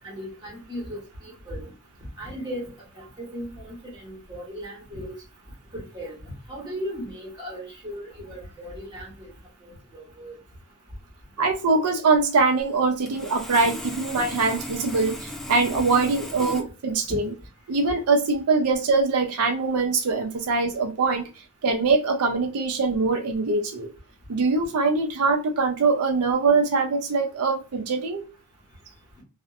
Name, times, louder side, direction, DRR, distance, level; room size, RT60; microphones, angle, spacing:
voice 1, 0.0-1.7 2.2-5.1 5.7-6.1 6.5-9.3 9.6-10.4 17.1-17.2, equal, 20° right, 1.2 m, -37 dB
voice 2, 11.4-17.3 17.7-21.3 21.6-23.9 24.3-28.3, right 4 dB, 85° right, 0.5 m, -23 dB
Sawing, 12.6-12.7 13.1-16.6, left 1 dB, ahead, 0.4 m, -36 dB
2.6 x 2.0 x 2.4 m
head